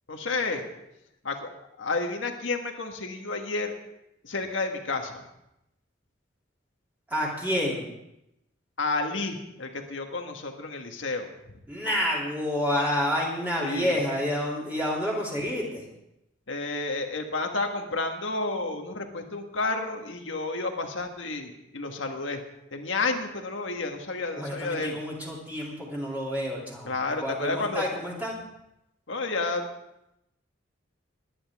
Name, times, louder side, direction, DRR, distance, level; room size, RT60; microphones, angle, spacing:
voice 1, 0.1-0.7 1.2-1.5 1.8-3.7 4.2-5.3 8.8-11.3 13.6-14.0 16.5-22.4 22.7-25.0 26.8-27.8 29.1-29.6, left 3 dB, 75° left, 4 dB, 1.6 m, -31 dB
voice 2, 7.1-7.9 11.7-15.8 24.3-28.4, equal, 10° right, -5 dB, 2.9 m, -29 dB
21.5 x 9.9 x 3.6 m, 0.86 s
head